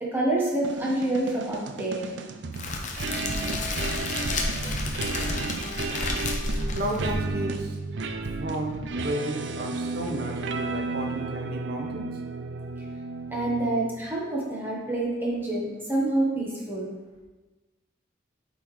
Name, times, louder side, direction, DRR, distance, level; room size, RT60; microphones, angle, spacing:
voice 1, 0.0-2.1 13.3-16.9, right 2 dB, 10° right, -4 dB, 1.1 m, -27 dB
sound 1, 0.6-14.1, right 3 dB, 70° right, 0.4 m, -33 dB
Crackle, 2.5-7.6, left 2 dB, 40° left, 0.7 m, -31 dB
voice 2, 6.7-7.8 8.4-12.2, right 1 dB, 55° right, 1 dB, 0.9 m, -33 dB
8.5 x 3.8 x 3.1 m, 1.1 s
head